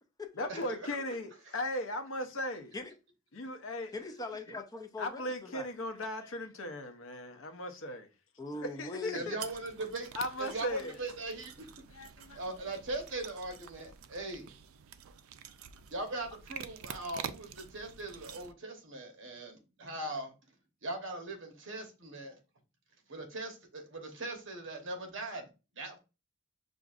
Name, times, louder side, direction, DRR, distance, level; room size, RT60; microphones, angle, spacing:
voice 1, 0.3-2.7 3.3-3.9 5.0-8.1 8.6-9.4 10.1-11.0 11.9-12.5, left 1 dB, 70° left, 0.7 m, -37 dB
voice 2, 3.9-5.7 8.4-9.3, left 3 dB, 20° left, 0.5 m, -41 dB
voice 3, 9.1-10.1 10.4-11.7 12.2-14.5 15.9-20.3 20.8-22.4 23.1-25.5 25.7-26.0, right 2 dB, 65° right, 1.0 m, -40 dB
sound 1, 9.4-18.5, right 8 dB, 80° right, 0.4 m, -47 dB
5.9 x 2.5 x 2.4 m
head